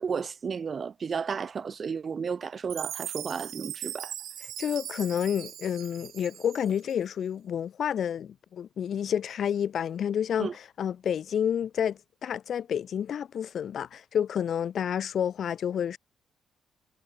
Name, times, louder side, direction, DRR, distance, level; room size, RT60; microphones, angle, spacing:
voice 1, 0.0-4.1 10.4-10.5, right 6 dB, 45° right, 0.8 m, -33 dB
Chime, 2.7-6.9, right 11 dB, 75° right, 7.8 m, -40 dB
voice 2, 4.4-16.0, left 8 dB, 60° left, 0.8 m, -29 dB
cardioid pair, 90°, 0 cm